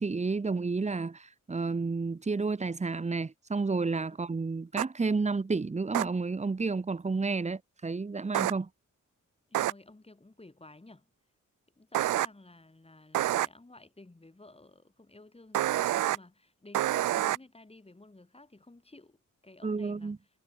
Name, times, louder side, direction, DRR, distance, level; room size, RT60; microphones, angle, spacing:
voice 1, 0.0-8.7 19.6-20.2, right 4 dB, 20° right, 0.8 m, -31 dB
sound 1, 4.8-4.9 5.9-6.0 8.3-8.5 9.5-9.7 11.9-12.3 13.1-13.5 15.5-16.2 16.7-17.4, right 14 dB, 70° right, 0.5 m, -27 dB
voice 2, 9.5-11.1 11.8-20.1, left 2 dB, 20° left, 5.2 m, -53 dB
cardioid pair, 80°, 32 cm